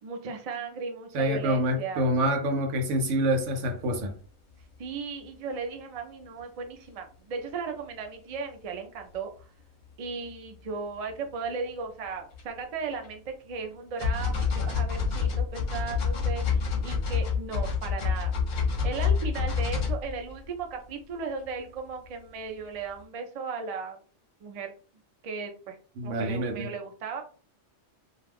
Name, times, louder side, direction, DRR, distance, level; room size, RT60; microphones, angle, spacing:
voice 1, 0.0-2.1 4.8-9.5 10.0-18.3 18.8-24.0 24.4-24.7 25.2-25.8 26.0-27.2, right 5 dB, 50° right, 0.4 m, -36 dB
voice 2, 1.1-4.2 26.0-26.7, right 1 dB, 90° right, 1.0 m, -26 dB
sound 1, 4.0-4.1 12.3-12.4 12.9-13.1 14.0-20.7 21.5-21.6, left 5 dB, 50° left, 0.6 m, -28 dB
2.3 x 2.2 x 3.3 m
omnidirectional pair, 1.2 m